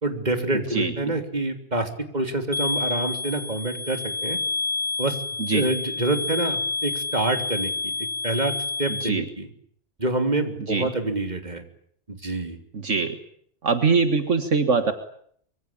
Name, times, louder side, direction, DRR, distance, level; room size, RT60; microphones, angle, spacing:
voice 1, 0.0-4.4 5.0-5.2 5.5-7.9 8.2-8.5 8.8-9.5 10.0-11.6 12.1-12.6, right 2 dB, 35° right, 7 dB, 3.5 m, -27 dB
sound 1, 2.5-9.1, left 3 dB, ahead, 1.3 m, -29 dB
voice 2, 12.7-13.2 13.6-14.9, right 4 dB, 70° right, 9 dB, 2.0 m, -22 dB
25.0 x 24.5 x 8.7 m, 0.64 s
omnidirectional pair, 1.3 m